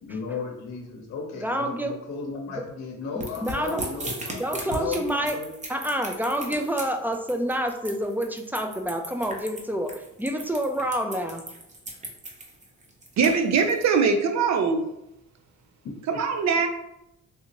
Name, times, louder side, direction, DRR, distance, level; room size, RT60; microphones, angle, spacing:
voice 1, 0.0-5.6 16.1-16.2, left 4 dB, 65° left, 0 dB, 0.8 m, -35 dB
voice 2, 1.4-2.0 2.5-2.6 3.1-3.8 4.4-5.4 5.7-11.4, equal, 5° right, 4 dB, 0.3 m, -28 dB
sound 1, 3.2-13.8, right 1 dB, 25° right, 0.7 m, -37 dB
voice 3, 13.2-14.9 16.2-16.7, right 5 dB, 65° right, 6 dB, 0.6 m, -22 dB
3.4 x 2.8 x 2.8 m, 0.85 s
cardioid pair, 90°, 30 cm